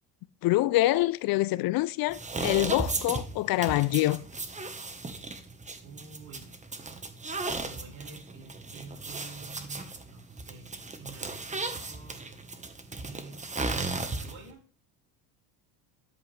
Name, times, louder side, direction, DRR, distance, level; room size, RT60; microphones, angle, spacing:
voice 1, 0.4-4.2, left 17 dB, 50° left, 0.5 m, -25 dB
sound 1, 2.1-14.5, right 3 dB, 15° right, 1.2 m, -36 dB
voice 2, 5.8-6.5 7.6-10.7 11.0-12.6 13.0-14.6, right 4 dB, 75° right, 5.1 m, -48 dB
11.0 x 7.8 x 3.3 m
supercardioid pair, 100°, 47 cm